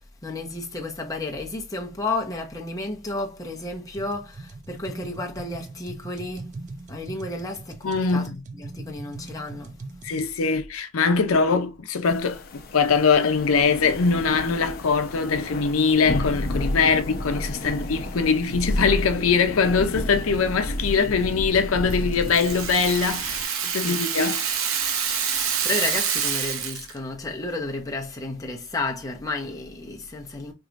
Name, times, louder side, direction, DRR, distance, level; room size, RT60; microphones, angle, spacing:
voice 1, 0.2-6.5 6.9-9.7 11.2-11.5 16.8-16.9 17.6-17.9 23.8-24.0 25.4-30.5, left 2 dB, 15° left, 0.8 m, -32 dB
sound 1, 3.9-10.3, right 3 dB, 35° right, 0.4 m, -41 dB
voice 2, 7.8-8.4 10.0-24.4, left 5 dB, 80° left, 0.6 m, -22 dB
sound 2, 12.0-23.4, left 1 dB, 45° left, 0.9 m, -31 dB
Rattle (instrument), 21.9-27.0, right 7 dB, 75° right, 0.7 m, -27 dB
4.7 x 2.9 x 2.5 m
head